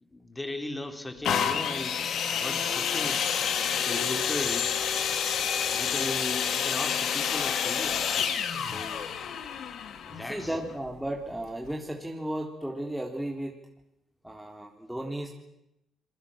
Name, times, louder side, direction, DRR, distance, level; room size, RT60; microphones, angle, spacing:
voice 1, 0.1-2.0 2.3-3.2 3.8-4.8 5.7-8.0 8.6-9.4 10.0-10.5, left 2 dB, 15° left, 6 dB, 4.1 m, -37 dB
sound 1, 1.2-10.9 11.7-11.8, left 7 dB, 70° left, 2.6 m, -29 dB
voice 2, 10.2-13.5 14.2-15.3, right 1 dB, ahead, -1 dB, 3.7 m, -34 dB
27.0 x 22.5 x 7.4 m, 0.86 s
cardioid pair, 90°, 0 cm